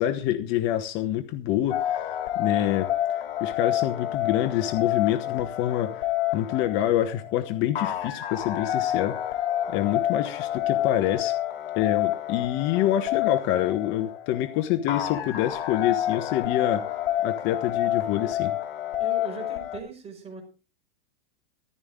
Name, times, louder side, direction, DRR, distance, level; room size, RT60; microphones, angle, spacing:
voice 1, 0.0-2.1 2.3-2.9 3.4-5.9 6.3-9.2 9.7-11.3 11.8-16.9 17.2-18.5, left 12 dB, 40° left, 1.0 m, -26 dB
sound 1, 1.7-19.8, left 12 dB, 75° left, 2.9 m, -28 dB
voice 2, 19.0-20.4, right 4 dB, 20° right, 5.2 m, -39 dB
14.0 x 12.5 x 3.6 m
supercardioid pair, 135°, 29 cm